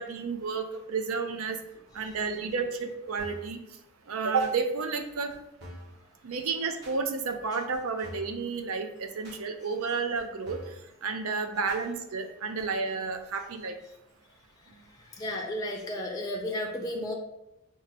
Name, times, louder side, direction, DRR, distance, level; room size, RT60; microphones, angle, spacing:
voice 1, 0.0-1.6 1.9-3.6 4.1-5.3 6.2-10.6 11.0-13.7, right 4 dB, 80° right, 7 dB, 0.5 m, -31 dB
sound 1, 3.2-3.5 4.4-4.6 5.3-5.4 5.6-6.0 6.8-7.0 7.7-8.4 9.2-9.4 10.1-10.2 10.5-10.8 11.7-11.8 12.6-12.7, equal, 50° right, 1.0 m, -45 dB
voice 2, 15.0-17.1, left 1 dB, 15° left, -1 dB, 0.4 m, -33 dB
4.6 x 2.1 x 4.1 m, 0.86 s
head